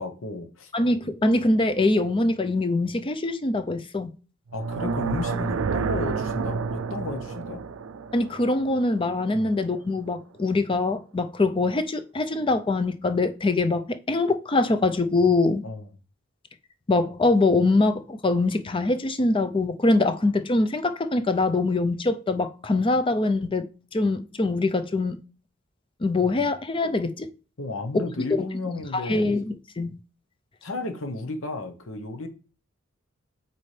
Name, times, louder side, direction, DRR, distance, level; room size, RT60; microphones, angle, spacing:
voice 1, 0.0-0.7 4.5-7.6 9.3-9.5 15.6-15.9 26.2-26.3 27.6-29.3 30.6-32.3, left 2 dB, 75° left, 1.0 m, -33 dB
voice 2, 0.7-4.1 8.1-15.6 16.9-23.7 23.9-25.2 26.0-27.3 29.1-30.0, left 2 dB, 25° left, 0.5 m, -23 dB
sound 1, 4.5-9.6, right 4 dB, 75° right, 0.4 m, -30 dB
8.3 x 4.2 x 3.3 m
head